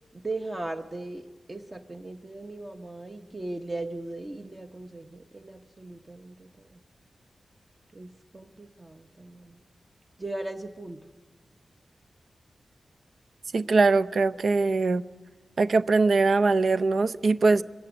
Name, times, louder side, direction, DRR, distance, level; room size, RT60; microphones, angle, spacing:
voice 1, 0.2-6.8 7.9-9.6 10.2-11.1, right 2 dB, 25° right, 4 dB, 0.9 m, -38 dB
voice 2, 13.5-15.0 15.6-17.6, right 3 dB, 60° right, 12 dB, 0.6 m, -22 dB
24.5 x 15.0 x 9.6 m, 1.3 s
wide cardioid pair, 135°, 0 cm